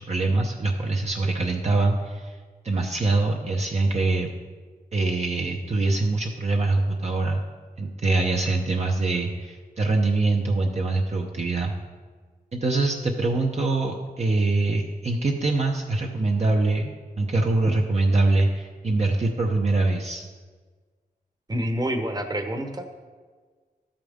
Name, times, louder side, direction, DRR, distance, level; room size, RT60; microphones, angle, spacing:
voice 1, 0.0-2.4 2.6-4.3 4.9-7.4 7.8-11.7 12.5-20.3, right 2 dB, 45° right, 0 dB, 0.8 m, -24 dB
voice 2, 21.5-22.9, equal, 25° right, 6 dB, 1.0 m, -27 dB
13.0 x 8.9 x 3.6 m, 1.5 s
wide cardioid pair, 115°, 15 cm